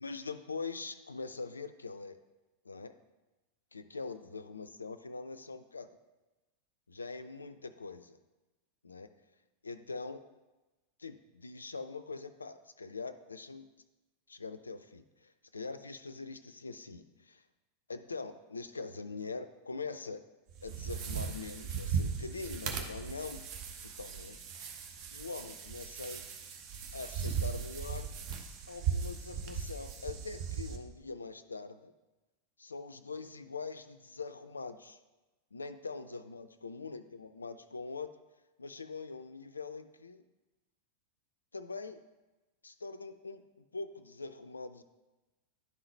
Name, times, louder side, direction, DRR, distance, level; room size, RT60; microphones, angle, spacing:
voice 1, 0.0-2.2 2.6-2.9 3.7-5.9 6.9-8.2 8.8-9.1 9.6-10.2 11.0-13.7 14.3-17.4 17.9-20.2 20.6-23.4 23.8-24.4 25.1-26.2 26.9-28.1 28.7-31.9 32.6-35.0 35.5-38.1 38.6-40.2 41.5-42.0 42.6-44.8, left 4 dB, 75° left, 11 dB, 0.3 m, -43 dB
sound 1, 20.5-30.8, right 6 dB, 40° right, 0.8 m, -38 dB
10.5 x 3.9 x 3.2 m, 1.1 s
figure-of-eight pair, 90°, 0 cm